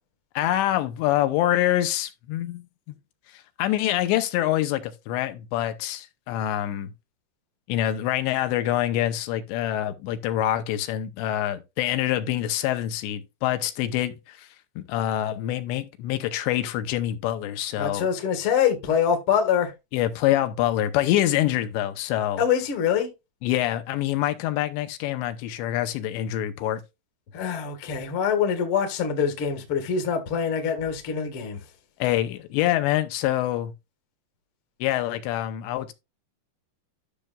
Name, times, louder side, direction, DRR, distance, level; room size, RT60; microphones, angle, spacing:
voice 1, 0.4-3.0 3.6-6.9 7.7-14.5 14.8-18.1 19.9-22.4 23.4-26.8 32.0-33.7 34.8-35.9, left 13 dB, 80° left, 2.9 m, -25 dB
voice 2, 17.8-19.7 22.4-23.1 27.3-31.6, left 7 dB, 55° left, 1.5 m, -24 dB
12.0 x 6.6 x 2.3 m
omnidirectional pair, 5.2 m